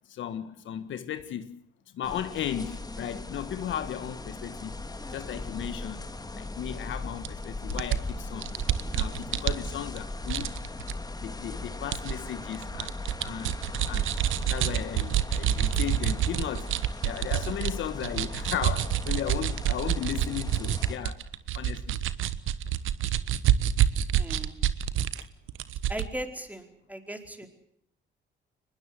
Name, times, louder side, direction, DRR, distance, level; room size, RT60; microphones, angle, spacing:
voice 1, 0.1-1.6 1.9-4.7 5.1-6.0 6.3-8.5 8.9-10.6 11.2-12.9 13.2-13.6 13.9-14.1 14.5-16.7 17.0-21.2 21.5-22.0, left 10 dB, 75° left, 1.7 m, -35 dB
sound 1, 2.0-21.0, left 2 dB, 20° left, 2.6 m, -39 dB
sound 2, 7.2-7.3 7.7-10.0 10.3-10.9 11.9-12.1 12.5-17.7 18.0-25.2 25.5-26.1, right 11 dB, 85° right, 1.3 m, -27 dB
voice 2, 24.1-24.5 25.9-27.5, right 1 dB, 5° right, 4.7 m, -38 dB
23.5 x 21.0 x 7.9 m
cardioid pair, 90°, 20 cm